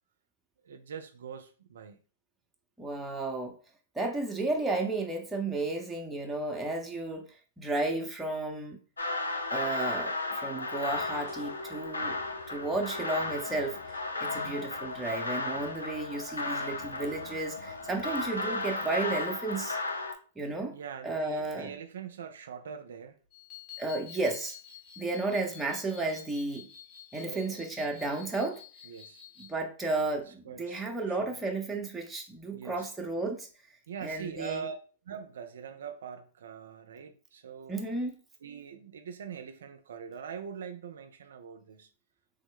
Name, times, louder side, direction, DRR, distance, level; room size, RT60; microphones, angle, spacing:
voice 1, 0.6-2.0 14.2-14.6 20.7-23.2 27.1-27.7 28.9-29.2 30.1-31.3 32.5-32.9 33.9-34.8 35.1-37.8 38.4-41.9, right 7 dB, 70° right, 0.4 m, -43 dB
voice 2, 2.8-3.6 3.9-7.3 7.6-8.8 9.5-12.2 12.5-19.8 20.4-20.7 21.0-21.8 23.8-24.6 25.0-26.7 27.1-28.6 29.4-33.5 34.0-34.6 37.7-38.1, right 2 dB, 10° right, 0.7 m, -33 dB
sound 1, 9.0-20.1, left 2 dB, 85° left, 0.5 m, -34 dB
sound 2, 10.9-19.0, left 5 dB, 60° left, 1.1 m, -55 dB
sound 3, 23.3-29.5, left 10 dB, 35° left, 1.1 m, -50 dB
3.2 x 2.0 x 3.7 m
hypercardioid pair, 110°, 0 cm